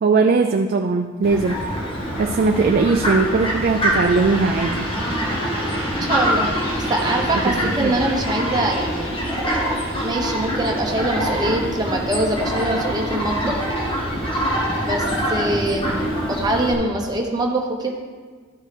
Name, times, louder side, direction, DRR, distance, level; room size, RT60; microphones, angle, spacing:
voice 1, 0.0-1.6 2.2-4.9 7.3-7.5 7.8-7.9 9.9-10.1, right 4 dB, 50° right, 5 dB, 0.4 m, -19 dB
Fowl, 1.2-16.7, equal, 25° left, 1.7 m, -24 dB
voice 2, 6.1-6.5 6.8-9.1 10.0-13.6 14.8-17.9, right 1 dB, 20° right, 0 dB, 1.0 m, -23 dB
13.0 x 5.3 x 3.4 m, 1.5 s
head